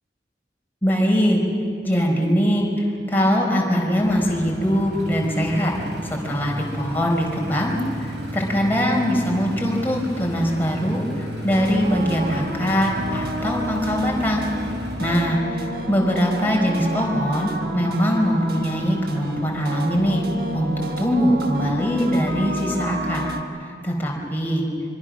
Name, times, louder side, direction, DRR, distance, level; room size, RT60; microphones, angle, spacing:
voice 1, 0.8-1.4 1.8-5.7 6.0-14.5 15.0-20.2 20.5-23.2 23.6-24.6, equal, 10° left, -1 dB, 4.2 m, -22 dB
sound 1, 3.9-15.0, right 1 dB, 85° right, 7.0 m, -34 dB
sound 2, 11.5-23.4, right 1 dB, 60° right, 1.5 m, -31 dB
25.5 x 24.5 x 6.3 m, 2.5 s
head